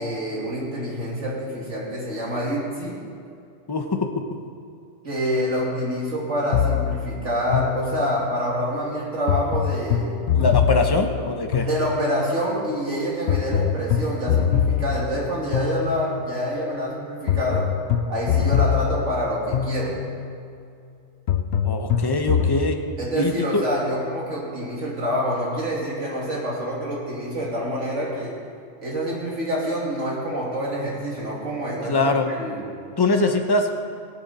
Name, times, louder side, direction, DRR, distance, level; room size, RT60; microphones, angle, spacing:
voice 1, 0.0-3.0 5.0-10.2 11.7-17.7 18.1-20.0 23.0-28.4 28.8-32.7, equal, 75° right, -4 dB, 3.2 m, -27 dB
voice 2, 3.7-4.2 10.3-11.7 21.6-22.8 23.1-23.6 31.8-32.3 33.0-33.7, left 2 dB, 20° left, 4 dB, 0.9 m, -22 dB
sound 1, 6.5-8.4 9.3-12.3 13.3-16.4 17.3-20.3 21.3-22.7, left 8 dB, 70° left, 0.9 m, -24 dB
18.0 x 11.5 x 4.3 m, 2.4 s
omnidirectional pair, 1.2 m